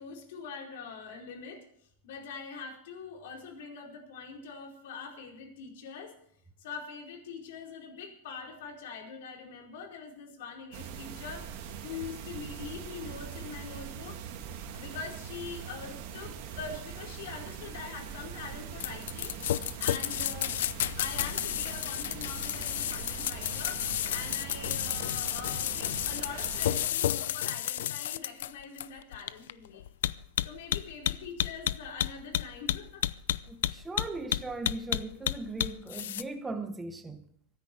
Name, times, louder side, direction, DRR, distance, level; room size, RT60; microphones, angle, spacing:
voice 1, 0.0-1.6 2.0-6.1 6.6-14.2 14.7-19.3 19.8-20.6 21.0-29.8 30.4-33.0, left 5 dB, 65° left, 4.6 m, -43 dB
sound 1, 10.7-26.9, right 8 dB, 45° right, 2.2 m, -42 dB
sound 2, 18.8-36.2, left 12 dB, 80° left, 0.6 m, -31 dB
voice 2, 33.5-37.3, right 2 dB, 10° right, 0.9 m, -38 dB
24.0 x 10.0 x 4.7 m
supercardioid pair, 175°, 0 cm